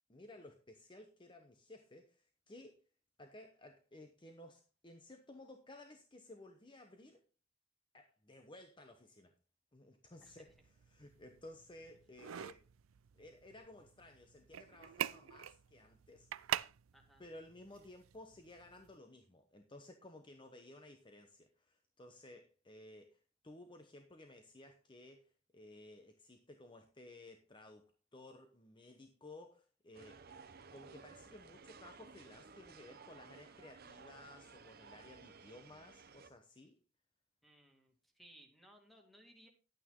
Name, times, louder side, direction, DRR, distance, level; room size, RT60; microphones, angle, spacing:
voice 1, 0.1-2.8 3.2-7.2 7.9-9.3 9.7-10.5 10.9-12.7 13.1-16.5 17.2-30.2 30.7-36.8, left 1 dB, 25° left, 0.9 m, -56 dB
sound 1, 10.1-19.0, right 11 dB, 90° right, 0.4 m, -46 dB
sound 2, 29.9-36.3, right 5 dB, 50° right, 1.0 m, -57 dB
voice 2, 37.4-39.5, right 1 dB, ahead, 2.3 m, -62 dB
11.5 x 9.1 x 3.8 m
head